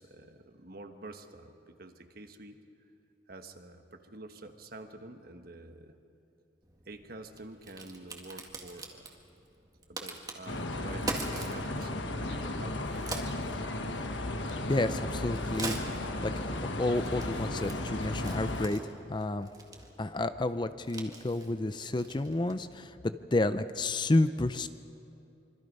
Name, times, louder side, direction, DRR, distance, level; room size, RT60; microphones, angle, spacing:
voice 1, 0.0-2.6 3.3-6.0 6.8-9.2 9.9-11.9 12.2-12.9, right 2 dB, 55° right, 6 dB, 1.4 m, -48 dB
Crack, 6.6-22.7, right 2 dB, 20° right, 1.9 m, -44 dB
sound 1, 10.5-18.7, left 1 dB, 85° left, 1.4 m, -35 dB
voice 2, 14.7-18.8 19.1-19.5 20.0-24.7, left 2 dB, 25° left, 11 dB, 0.5 m, -30 dB
25.5 x 24.5 x 5.4 m, 2.7 s
head